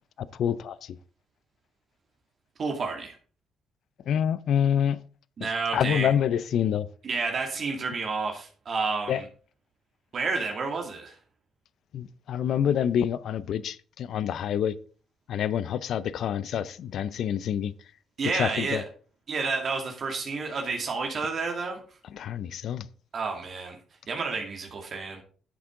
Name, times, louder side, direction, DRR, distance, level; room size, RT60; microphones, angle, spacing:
voice 1, 0.4-0.8 4.1-5.0 5.7-6.9 9.1-9.2 11.9-14.8 15.3-17.7 18.3-18.8 22.1-22.9, left 9 dB, 70° left, 0.6 m, -27 dB
voice 2, 2.6-3.1 5.4-6.1 7.0-9.3 10.1-11.2 18.2-18.9 19.3-21.8 23.1-23.8 24.1-25.2, right 4 dB, 50° right, 2.4 m, -30 dB
11.0 x 8.3 x 3.8 m
cardioid pair, 90°, 0 cm